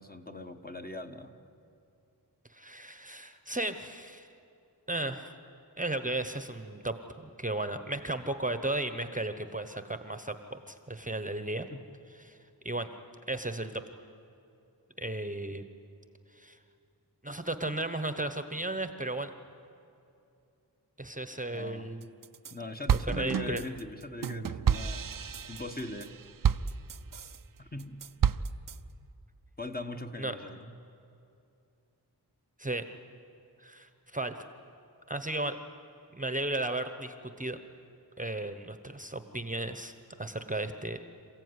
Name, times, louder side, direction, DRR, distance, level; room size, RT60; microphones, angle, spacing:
voice 1, 0.0-1.3 11.7-11.8 21.5-21.9 22.5-25.0 25.5-26.2 27.6-28.0 29.6-30.8, left 1 dB, 20° left, 5 dB, 1.3 m, -40 dB
voice 2, 2.5-4.3 4.9-5.3 5.8-11.7 12.2-12.4 12.6-12.9 13.3-13.8 15.0-15.6 16.3-16.6 17.2-19.3 21.0-22.1 23.1-23.6 30.2-30.3 32.6-32.8 33.6-34.3 35.1-35.6 36.1-37.6 38.2-41.0, right 2 dB, 20° right, 9 dB, 1.0 m, -35 dB
sound 1, 22.0-22.5 22.9-27.4 27.8-28.8, right 8 dB, 55° right, 0.6 m, -30 dB
27.5 x 15.5 x 9.7 m, 2.7 s
wide cardioid pair, 90°, 41 cm